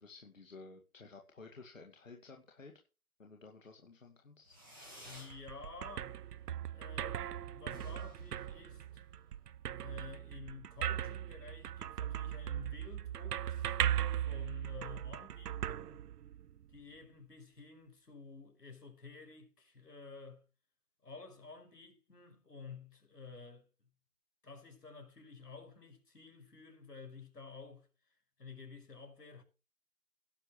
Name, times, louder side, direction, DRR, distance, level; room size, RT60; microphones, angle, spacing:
voice 1, 0.0-2.8 3.2-4.6, left 3 dB, 55° left, 2.3 m, -54 dB
Fireworks, 4.4-5.4 5.7-6.3 6.6-6.7 6.9-7.0 7.3-7.4 7.6-9.2, equal, 5° right, 3.2 m, -54 dB
voice 2, 5.0-6.2 6.7-9.0 9.8-16.0 16.7-20.4 21.0-23.7 24.4-27.9 28.4-29.4, left 4 dB, 90° left, 6.1 m, -52 dB
sound 1, 5.1-16.6, right 10 dB, 85° right, 0.5 m, -38 dB
17.0 x 11.5 x 3.2 m
figure-of-eight pair, 180°, 46 cm